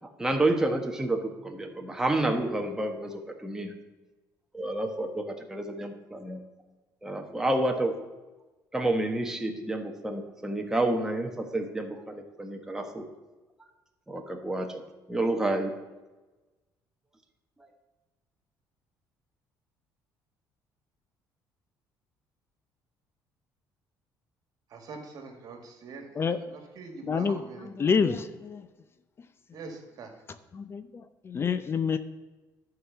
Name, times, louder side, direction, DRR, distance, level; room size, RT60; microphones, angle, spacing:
voice 1, 0.0-3.7 4.5-6.4 7.0-8.0 8.7-13.0 14.1-14.8 15.1-15.7 17.6-17.7, right 2 dB, 5° right, 3 dB, 1.2 m, -29 dB
voice 2, 24.7-27.7 29.5-30.1, right 4 dB, 60° right, 5 dB, 1.8 m, -43 dB
voice 3, 27.0-28.7 30.5-32.0, left 6 dB, 35° left, 12 dB, 0.5 m, -28 dB
11.0 x 4.8 x 7.0 m, 1.2 s
cardioid pair, 105°, 7 cm